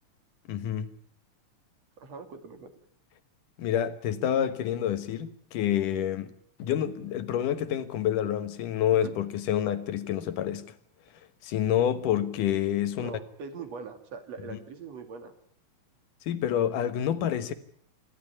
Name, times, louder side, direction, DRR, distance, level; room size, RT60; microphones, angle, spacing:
voice 1, 0.5-0.9 3.6-6.3 6.6-10.6 11.4-13.1 16.3-17.5, left 10 dB, 75° left, 2.8 m, -28 dB
voice 2, 2.0-2.7 4.4-4.5 9.0-9.1 12.9-15.3, right 5 dB, 55° right, 3.4 m, -42 dB
27.0 x 12.0 x 9.9 m
omnidirectional pair, 3.8 m